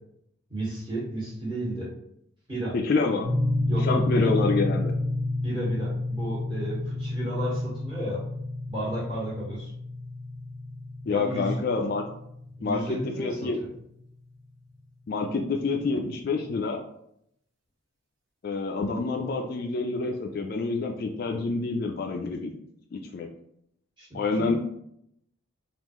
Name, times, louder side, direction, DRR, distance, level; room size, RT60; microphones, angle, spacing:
voice 1, 0.5-1.9 2.5-2.7 3.7-4.3 5.4-8.2 8.7-9.7 11.1-11.6 12.6-13.7 24.0-24.6, right 1 dB, 25° right, -8 dB, 1.4 m, -33 dB
voice 2, 2.7-3.3 3.8-4.9 11.1-12.1 12.6-13.6 15.1-16.8 18.4-22.5 22.9-23.3 24.1-24.5, left 3 dB, 45° left, 2 dB, 0.3 m, -27 dB
sound 1, 3.2-13.4, left 1 dB, 80° right, 1.1 m, -30 dB
3.6 x 2.4 x 3.0 m, 0.74 s
head